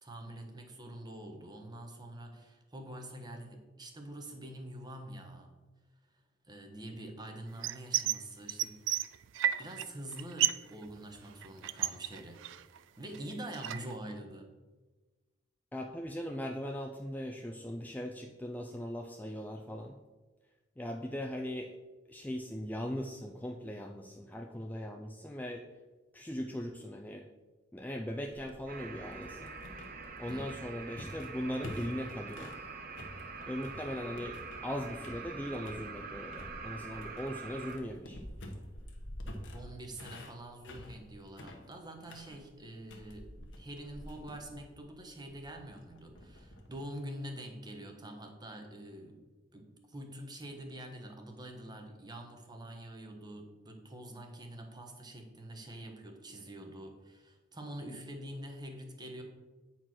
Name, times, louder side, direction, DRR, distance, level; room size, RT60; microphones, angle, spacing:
voice 1, 0.0-5.6 6.1-8.8 9.6-12.4 12.7-14.5 30.3-30.5 39.5-43.3 43.6-49.3 49.5-59.2, right 1 dB, 20° right, 3 dB, 1.2 m, -46 dB
sound 1, 7.6-8.2 8.5-9.9 10.1-10.7 11.0-12.8 13.1-13.9, right 12 dB, 80° right, 0.3 m, -32 dB
voice 2, 15.7-19.9 20.8-21.7 22.1-25.7 26.1-27.3 27.7-29.5 30.2-32.5 33.5-38.2, equal, 10° left, 2 dB, 0.4 m, -39 dB
sound 2, 28.3-32.6 33.0-34.7 35.0-35.9 36.3-46.8, left 1 dB, 80° left, 1.3 m, -48 dB
sound 3, 28.7-37.8, right 4 dB, 50° right, 0.9 m, -45 dB
9.0 x 4.5 x 6.0 m, 1.2 s
head